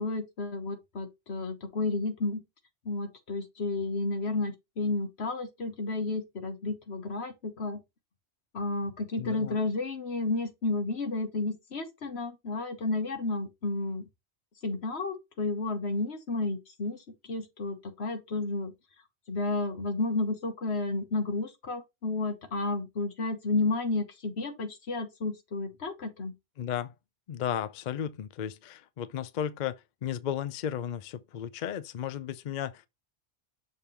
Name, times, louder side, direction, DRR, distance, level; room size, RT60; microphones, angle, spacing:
voice 1, 0.0-2.4 2.8-7.8 8.5-14.1 14.6-17.0 17.3-18.7 19.3-26.3, left 3 dB, 80° left, 1.6 m, -32 dB
voice 2, 9.2-9.6 26.6-26.9 27.3-32.9, left 9 dB, 55° left, 0.6 m, -34 dB
6.5 x 3.6 x 4.3 m
omnidirectional pair, 1.1 m